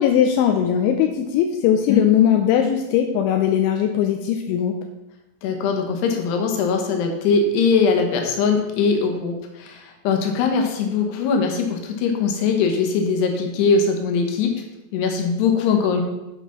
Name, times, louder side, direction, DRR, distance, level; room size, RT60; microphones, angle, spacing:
voice 1, 0.0-4.8, left 9 dB, 85° left, 4 dB, 2.7 m, -19 dB
voice 2, 5.4-14.5 14.9-16.0, left 5 dB, 70° left, 3 dB, 2.9 m, -21 dB
8.7 x 5.4 x 5.8 m, 0.96 s
omnidirectional pair, 5.8 m